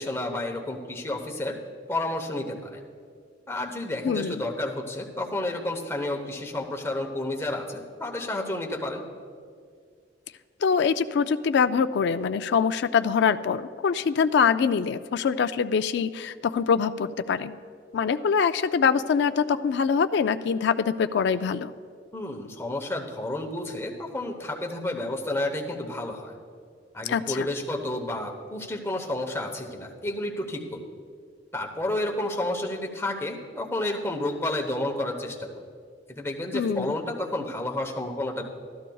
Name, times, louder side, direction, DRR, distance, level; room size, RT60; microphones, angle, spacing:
voice 1, 0.0-1.6 1.9-2.8 3.5-9.0 22.1-26.4 26.9-30.8 31.5-35.6 36.1-38.4, left 1 dB, 15° left, 1 dB, 0.9 m, -31 dB
voice 2, 4.0-4.4 10.6-17.5 17.9-21.7 27.1-27.5 36.5-36.9, left 6 dB, 65° left, 11 dB, 0.3 m, -24 dB
15.5 x 13.0 x 2.3 m, 2.1 s
head